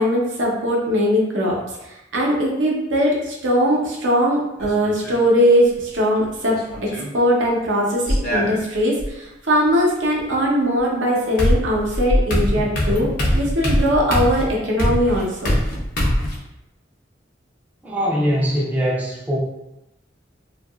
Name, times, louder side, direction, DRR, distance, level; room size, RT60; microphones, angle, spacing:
voice 1, 0.0-1.6 1.8-6.6 6.9-15.5, equal, 85° right, -3 dB, 0.6 m, -20 dB
sound 1, 4.6-5.2 6.5-7.1 8.1-9.1 10.8-10.9 11.4-16.4, equal, 50° left, 0.5 m, -22 dB
voice 2, 17.8-19.4, equal, 10° right, -5 dB, 0.4 m, -21 dB
2.7 x 2.3 x 2.3 m, 0.91 s
head